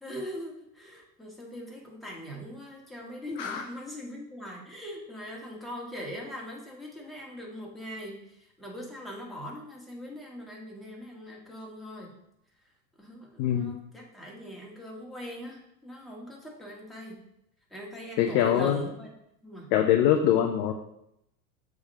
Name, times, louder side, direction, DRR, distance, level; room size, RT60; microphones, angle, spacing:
voice 1, 0.0-12.2 13.0-17.2 17.7-19.1 19.4-19.7, equal, ahead, -3 dB, 1.6 m, -41 dB
voice 2, 13.4-13.8 18.2-18.8 19.7-20.7, left 10 dB, 30° left, 5 dB, 0.3 m, -23 dB
6.9 x 3.5 x 5.4 m, 0.80 s
hypercardioid pair, 110°, 49 cm